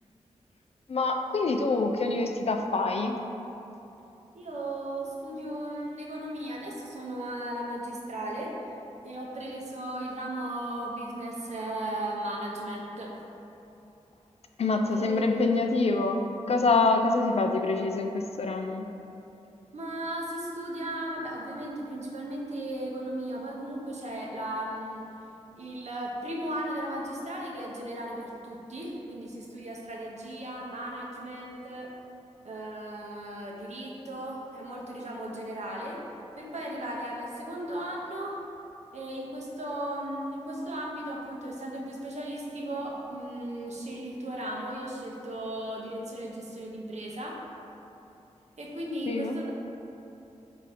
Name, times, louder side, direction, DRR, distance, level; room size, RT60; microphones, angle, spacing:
voice 1, 0.9-3.2 14.6-18.9 49.1-49.3, left 3 dB, 55° left, 4 dB, 0.4 m, -26 dB
voice 2, 4.3-8.5 9.0-13.1 14.9-15.5 19.7-25.0 25.6-31.9 32.4-36.0 36.4-38.3 38.9-47.3 48.6-49.5, right 1 dB, 65° right, -2 dB, 0.8 m, -36 dB
4.1 x 2.7 x 4.8 m, 2.9 s
cardioid pair, 45°, 12 cm